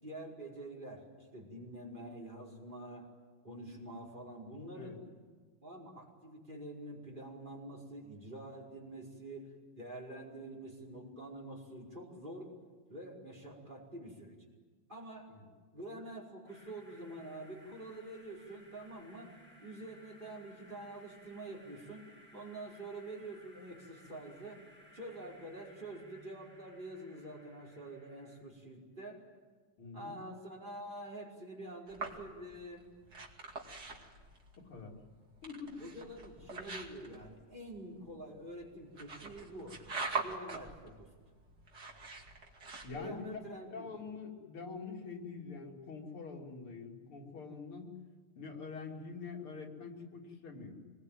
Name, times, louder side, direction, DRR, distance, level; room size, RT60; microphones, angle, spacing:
voice 1, 0.0-3.1 3.4-5.0 5.6-12.6 12.9-14.3 14.9-15.3 15.7-19.3 19.6-22.1 22.3-24.6 24.9-29.2 29.9-32.9 35.8-39.8 40.2-41.1 42.9-43.9, right 1 dB, 20° right, -1 dB, 5.3 m, -47 dB
sound 1, 16.5-28.4, equal, 25° left, 6.1 m, -60 dB
voice 2, 29.8-30.2 34.6-35.0 35.4-35.8 42.8-43.4 43.7-47.9 48.4-50.8, left 4 dB, 85° left, 0 dB, 3.9 m, -45 dB
sound 2, 31.9-43.3, right 3 dB, 50° right, 3.0 m, -44 dB
25.5 x 21.5 x 9.2 m, 1.4 s
omnidirectional pair, 2.3 m